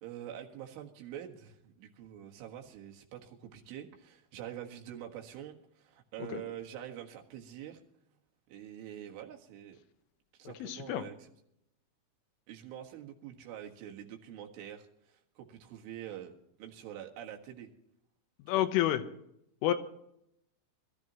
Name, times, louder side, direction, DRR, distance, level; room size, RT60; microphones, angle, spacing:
voice 1, 0.0-7.8 8.5-9.8 10.4-11.3 12.5-17.7 18.5-18.7, right 10 dB, 80° right, 2 dB, 4.0 m, -46 dB
voice 2, 10.6-11.1 18.5-19.0 19.6-19.7, left 12 dB, 90° left, 8 dB, 3.6 m, -29 dB
23.0 x 14.0 x 3.0 m, 0.76 s
omnidirectional pair, 5.6 m